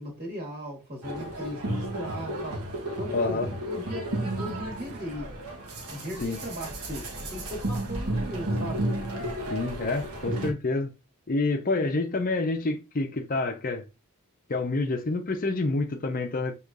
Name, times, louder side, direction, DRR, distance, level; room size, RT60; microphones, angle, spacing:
voice 1, 0.0-2.6 3.0-5.3 5.9-8.9 11.8-11.9, equal, 45° right, 1.7 m, -38 dB
sound 1, 1.0-10.5, right 1 dB, 85° right, 1.1 m, -33 dB
voice 2, 3.1-3.5 6.2-6.4 9.5-10.9 11.3-13.8 14.5-16.5, left 3 dB, 40° left, 0.6 m, -28 dB
6.2 x 3.1 x 2.4 m
head